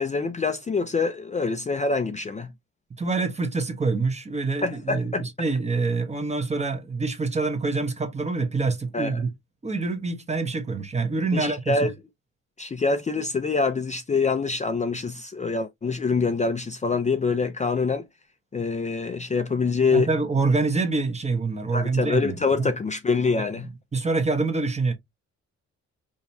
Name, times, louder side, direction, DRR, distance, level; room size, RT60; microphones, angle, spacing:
voice 1, 0.0-2.5 4.6-5.3 8.9-9.2 11.3-11.9 12.6-18.0 18.5-20.1 21.7-23.7, left 4 dB, 25° left, 0.5 m, -25 dB
voice 2, 3.0-9.3 9.6-11.9 19.9-22.7 23.3-23.5 23.9-24.9, right 3 dB, 20° right, 1.1 m, -26 dB
5.1 x 3.0 x 2.7 m
wide cardioid pair, 140°, 30 cm